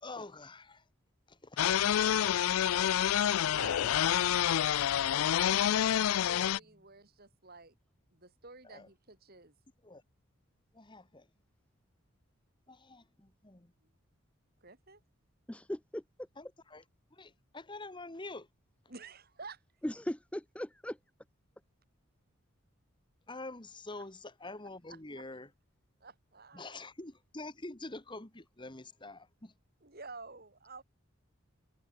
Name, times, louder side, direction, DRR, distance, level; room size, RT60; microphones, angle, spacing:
voice 1, 0.0-0.8 1.3-2.9 8.7-8.9 9.8-10.0 10.7-11.3 12.7-13.7 16.4-16.8 17.1-18.5 23.3-25.5 26.5-29.5, left 2 dB, 20° left, 1.5 m, -46 dB
sound 1, 1.6-6.6, left 10 dB, 85° left, 0.4 m, -28 dB
voice 2, 3.5-4.0 4.3-4.7 5.0-5.9 6.3-7.8 8.1-9.5 14.6-15.0 18.9-19.6 23.9-24.0 24.9-25.2 26.0-26.8 29.8-30.8, right 3 dB, 45° right, 4.1 m, -50 dB
voice 3, 15.5-16.0 19.8-21.0, equal, 5° left, 0.6 m, -38 dB
head